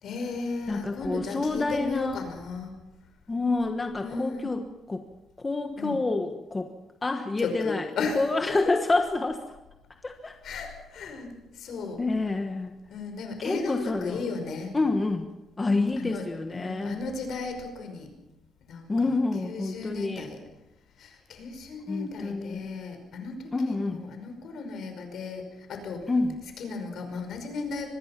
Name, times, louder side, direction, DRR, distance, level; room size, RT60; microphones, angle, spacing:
voice 1, 0.0-2.7 4.0-4.5 5.8-6.0 7.4-8.2 8.5-8.6 10.4-12.0 12.9-14.8 15.6-18.1 18.7-19.1 19.4-20.4 21.0-26.1 26.6-27.9, left 4 dB, 55° left, 6 dB, 5.4 m, -35 dB
voice 2, 0.7-2.2 3.3-4.6 4.9-5.0 5.4-6.7 7.0-7.9 8.1-9.4 10.0-10.4 12.0-12.7 13.4-14.3 14.7-15.3 15.6-17.0 18.9-20.3 21.9-22.7 23.5-24.0 26.1-26.4, left 3 dB, 15° left, 5 dB, 1.3 m, -28 dB
25.0 x 21.0 x 5.9 m, 0.99 s
cardioid pair, 155°, 0 cm